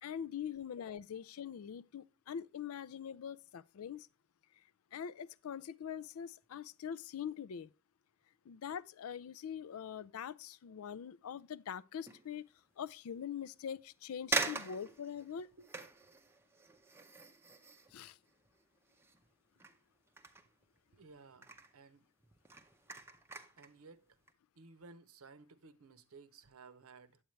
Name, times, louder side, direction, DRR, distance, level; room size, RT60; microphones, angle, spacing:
voice 1, 0.0-4.1 4.9-7.7 8.5-12.4 12.8-15.5 17.9-18.2, left 8 dB, 75° left, 0.4 m, -43 dB
sound 1, 12.0-12.3 12.9-13.0 13.8-13.9 14.3-19.3 19.6-21.0 21.3-21.8 22.2-23.7 24.1-24.3, right 3 dB, 10° right, 0.5 m, -42 dB
voice 2, 20.9-22.1 23.6-24.2 24.6-27.2, right 4 dB, 75° right, 0.7 m, -57 dB
9.2 x 8.0 x 3.1 m
head